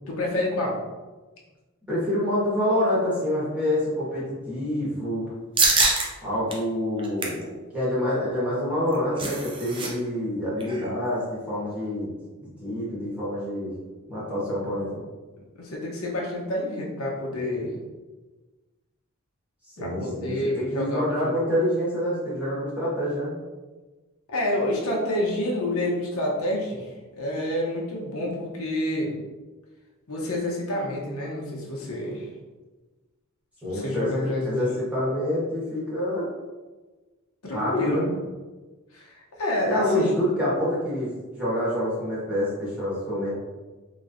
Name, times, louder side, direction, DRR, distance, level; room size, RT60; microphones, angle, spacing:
voice 1, 0.1-0.8 15.6-17.7 19.8-21.4 24.3-26.9 27.2-29.1 30.1-32.3 33.7-34.6 37.4-38.0 38.9-40.2, left 1 dB, 75° left, -3 dB, 0.8 m, -28 dB
voice 2, 1.9-5.3 6.2-12.1 12.6-13.7 14.1-15.0 19.8-23.3 33.6-36.3 37.5-38.1 39.6-43.3, left 1 dB, 5° right, -10 dB, 1.4 m, -27 dB
sound 1, 5.6-6.1 6.5-6.6 7.0-7.4 8.7-9.9 10.2-10.3 10.6-10.9, right 3 dB, 25° right, 0.5 m, -24 dB
3.2 x 3.0 x 2.6 m, 1.2 s
head